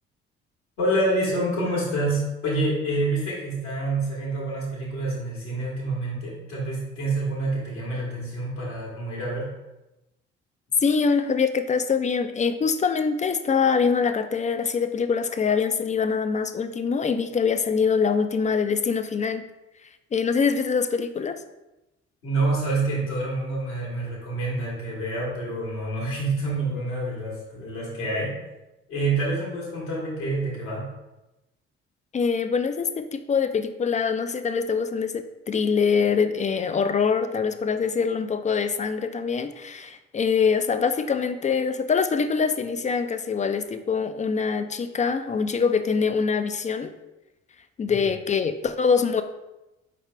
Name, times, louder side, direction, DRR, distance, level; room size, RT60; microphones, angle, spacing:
voice 1, 0.8-9.5 22.2-28.3 28.9-30.9 47.9-48.0, right 2 dB, 80° left, -9 dB, 1.5 m, -27 dB
voice 2, 10.8-19.4 20.1-21.4 32.1-46.9 47.8-49.2, left 5 dB, 25° left, 10 dB, 0.4 m, -24 dB
4.7 x 3.4 x 3.3 m, 0.98 s
hypercardioid pair, 50°, 31 cm